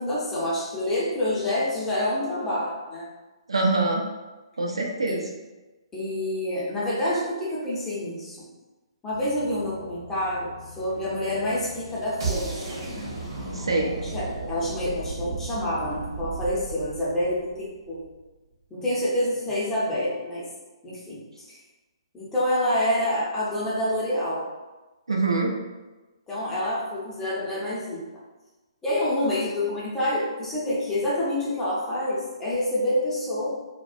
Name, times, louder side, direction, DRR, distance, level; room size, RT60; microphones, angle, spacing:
voice 1, 0.0-3.1 5.1-5.2 5.9-8.5 9.0-12.8 14.1-18.0 18.7-20.4 20.8-21.6 22.1-24.4 26.3-28.0 28.8-33.5, left 1 dB, 10° left, -8 dB, 0.6 m, -27 dB
voice 2, 3.5-4.1 4.6-5.3 13.5-14.0 25.1-25.5, right 3 dB, 75° right, 0 dB, 0.4 m, -24 dB
sound 1, 9.1-16.0, left 3 dB, 70° left, 0.4 m, -46 dB
sound 2, 12.2-18.2, right 4 dB, 55° right, 0.8 m, -34 dB
2.3 x 2.1 x 2.5 m, 1.1 s
figure-of-eight pair, 130°, 3 cm